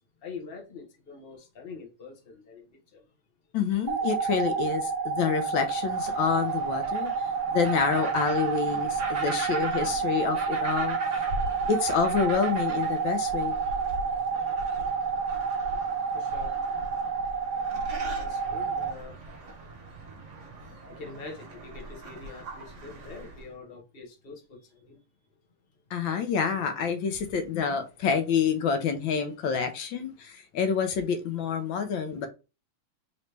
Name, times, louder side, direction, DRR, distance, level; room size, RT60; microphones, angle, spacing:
voice 1, 0.2-3.0 11.3-11.6 16.1-16.5 18.0-19.2 20.9-25.0, left 4 dB, 35° left, 1.1 m, -45 dB
voice 2, 3.5-11.2 11.7-13.5 25.9-32.3, left 6 dB, 80° left, 1.4 m, -28 dB
sound 1, 3.9-18.9, right 5 dB, 70° right, 1.0 m, -29 dB
sound 2, 5.7-23.5, right 2 dB, 45° right, 1.2 m, -40 dB
3.9 x 3.1 x 3.2 m
omnidirectional pair, 2.2 m